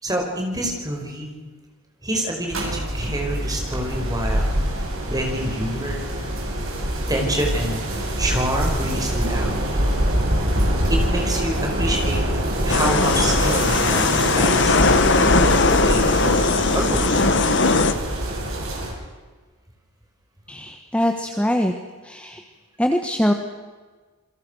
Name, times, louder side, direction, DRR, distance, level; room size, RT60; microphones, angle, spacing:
voice 1, 0.0-1.3 2.0-4.5 5.0-6.1 7.1-7.9 8.2-9.5 10.9-12.2 12.6-17.1, right 1 dB, 15° right, 2 dB, 5.1 m, -27 dB
sound 1, 2.5-18.9, equal, 65° right, 7.7 m, -24 dB
sound 2, 12.7-17.9, left 3 dB, 55° left, 1.5 m, -19 dB
voice 2, 20.5-21.7 22.0-22.4 22.8-23.3, equal, 5° left, 5 dB, 1.4 m, -22 dB
28.5 x 22.5 x 6.4 m, 1.4 s
head